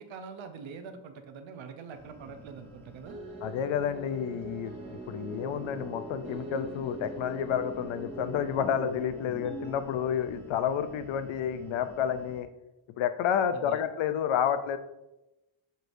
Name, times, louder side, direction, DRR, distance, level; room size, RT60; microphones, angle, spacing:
voice 1, 0.0-3.2 13.5-13.8, right 5 dB, 75° right, 8 dB, 0.7 m, -44 dB
sound 1, 1.9-12.4, left 1 dB, 5° left, 0.7 m, -51 dB
sound 2, 3.0-11.5, right 1 dB, 50° right, 1.3 m, -42 dB
voice 2, 3.4-12.5 13.0-14.8, left 8 dB, 75° left, 10 dB, 0.5 m, -30 dB
6.6 x 3.1 x 2.6 m, 0.96 s
wide cardioid pair, 155°, 47 cm